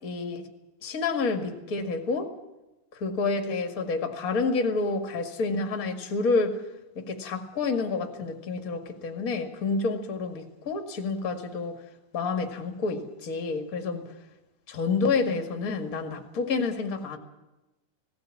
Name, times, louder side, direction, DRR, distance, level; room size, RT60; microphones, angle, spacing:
voice 1, 0.0-0.4 0.8-2.3 3.0-6.6 7.0-11.8 12.1-14.0 14.7-17.2, left 4 dB, 30° left, 5 dB, 2.2 m, -29 dB
18.5 x 17.0 x 8.5 m, 1.0 s
omnidirectional pair, 3.7 m